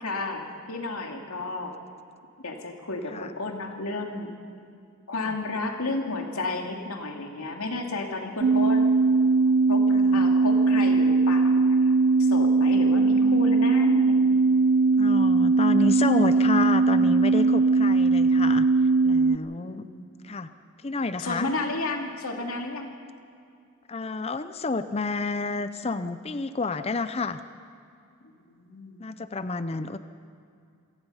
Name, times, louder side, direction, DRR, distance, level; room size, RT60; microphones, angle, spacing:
voice 1, 0.0-1.7 2.4-4.3 5.1-9.0 9.7-14.3 19.3-20.0 21.2-22.9 28.2-29.0, left 2 dB, 75° left, 2 dB, 2.5 m, -32 dB
sound 1, 8.4-19.4, right 3 dB, 60° right, 0.4 m, -20 dB
voice 2, 9.9-10.3 15.0-18.7 19.0-19.9 20.2-20.5 20.8-21.5 23.9-27.4 29.0-30.0, left 3 dB, 25° left, 12 dB, 0.5 m, -29 dB
27.0 x 17.0 x 5.6 m, 2.5 s
head